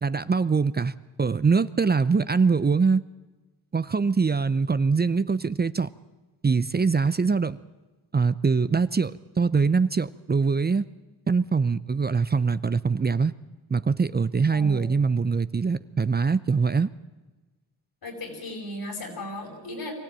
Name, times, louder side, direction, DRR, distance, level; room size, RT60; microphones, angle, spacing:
voice 1, 0.0-0.9 1.2-3.0 3.7-5.9 6.4-7.6 8.1-10.9 11.3-13.3 13.7-16.9, right 5 dB, 25° right, 15 dB, 0.6 m, -23 dB
voice 2, 14.5-14.9 18.0-19.9, left 1 dB, 75° left, 3 dB, 5.5 m, -36 dB
23.5 x 15.0 x 8.9 m, 1.2 s
cardioid pair, 60°, 37 cm